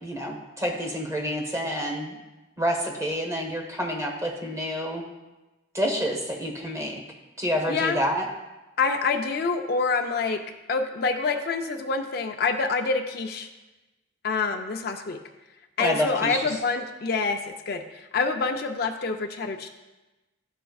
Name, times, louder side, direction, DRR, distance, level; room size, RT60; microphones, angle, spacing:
voice 1, 0.0-2.2 2.6-5.0 5.7-7.0 7.4-8.3 15.8-16.5, equal, 15° right, 0 dB, 1.0 m, -28 dB
voice 2, 7.7-8.0 8.8-10.4 10.7-13.5 14.2-15.2 15.8-19.7, left 4 dB, 50° left, 5 dB, 0.4 m, -26 dB
12.0 x 4.3 x 2.3 m, 1.1 s
head